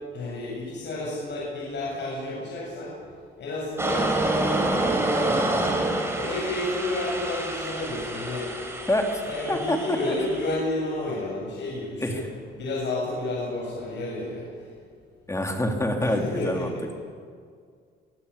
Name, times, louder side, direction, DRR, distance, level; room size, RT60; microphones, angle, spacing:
voice 1, 0.1-3.0 3.4-4.1 4.8-5.8 6.2-8.5 9.2-12.2 12.6-14.5 16.0-16.8, left 2 dB, 65° left, -4 dB, 7.7 m, -31 dB
sound 1, 3.8-10.6, right 2 dB, 15° right, 4.4 m, -27 dB
voice 2, 15.3-16.7, left 1 dB, 15° left, 3 dB, 3.6 m, -26 dB
24.5 x 16.0 x 8.6 m, 2.1 s
cardioid pair, 90°, 20 cm